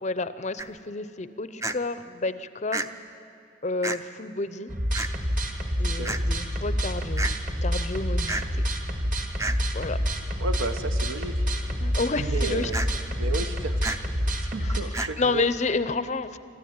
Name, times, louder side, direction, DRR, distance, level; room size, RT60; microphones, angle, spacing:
voice 1, 0.0-2.9 3.6-4.7 5.8-7.3 7.6-8.7 9.7-10.0 11.8-12.7 14.6-14.8 15.2-16.4, left 3 dB, 35° left, 13 dB, 0.6 m, -30 dB
sound 1, 0.6-0.7 1.6-1.8 2.7-2.9 3.8-4.0 4.9-5.1 6.0-6.2 7.2-7.3 8.3-8.4 9.4-9.6 12.7-12.9 13.8-14.0 14.9-15.1, right 2 dB, 15° right, 0.5 m, -29 dB
sound 2, 4.7-14.8, equal, 40° right, 1.7 m, -27 dB
voice 2, 10.4-11.4 12.2-12.8 13.2-13.8 14.4-15.4, right 3 dB, 75° right, 9 dB, 1.0 m, -33 dB
27.0 x 13.0 x 9.5 m, 2.6 s
head